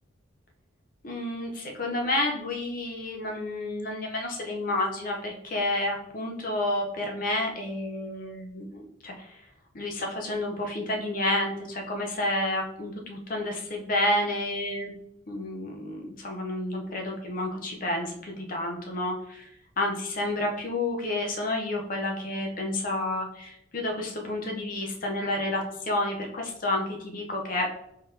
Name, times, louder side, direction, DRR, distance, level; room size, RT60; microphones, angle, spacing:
voice 1, 1.0-9.4 9.7-14.9 15.3-19.5 19.8-27.7, left 1 dB, 40° left, 1 dB, 0.5 m, -30 dB
3.8 x 3.5 x 2.6 m, 0.78 s
head